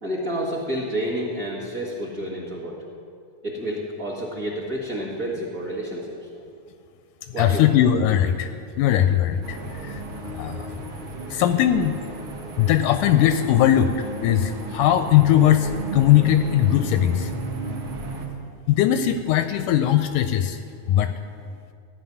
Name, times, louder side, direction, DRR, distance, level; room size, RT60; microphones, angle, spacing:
voice 1, 0.0-2.8 3.4-6.2 7.3-7.8, equal, 35° right, -3 dB, 1.6 m, -29 dB
voice 2, 7.4-9.6 9.8-10.0 10.4-10.8 11.3-12.0 12.6-13.9 14.2-17.3 18.7-20.6 20.9-21.1, left 11 dB, 80° left, 10 dB, 1.9 m, -19 dB
sound 1, 9.4-18.3, right 2 dB, 55° right, 1.6 m, -34 dB
15.0 x 5.6 x 9.8 m, 2.3 s
omnidirectional pair, 3.8 m